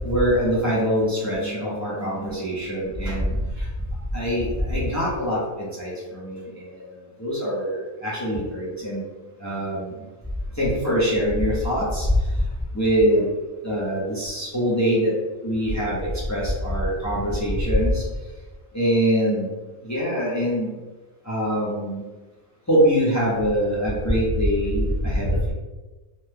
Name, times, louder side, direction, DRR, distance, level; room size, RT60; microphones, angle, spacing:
voice 1, 0.0-3.4 4.1-6.8 7.2-9.0 9.4-9.9 10.6-12.1 12.7-13.3 13.6-15.1 15.4-18.0 18.7-19.5 19.8-20.8 21.3-22.1 22.7-25.5, equal, 20° left, -7 dB, 0.4 m, -23 dB
2.8 x 2.2 x 3.3 m, 1.2 s
omnidirectional pair, 1.4 m